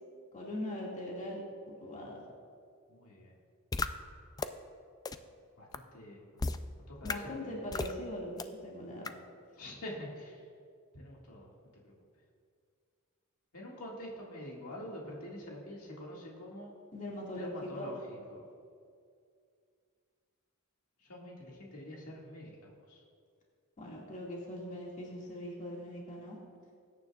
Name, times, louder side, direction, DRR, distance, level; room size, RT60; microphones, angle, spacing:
voice 1, 0.3-1.4 1.7-2.2 7.0-9.1 16.9-17.9 23.8-26.4, left 1 dB, 35° left, -3 dB, 2.0 m, -41 dB
voice 2, 2.9-3.3 5.6-6.2 6.9-7.5 9.6-10.4 10.9-11.5 13.5-16.7 17.4-18.5 21.0-23.0, left 1 dB, 75° left, -3 dB, 2.0 m, -46 dB
sound 1, 3.7-3.9 4.4-4.5 5.0-5.1 5.7-5.8 6.4-6.6 7.0-7.1 7.7-7.9 8.4-8.5 9.0-9.1, left 3 dB, 15° left, 0.3 m, -33 dB
20.0 x 9.5 x 2.4 m, 2.2 s
head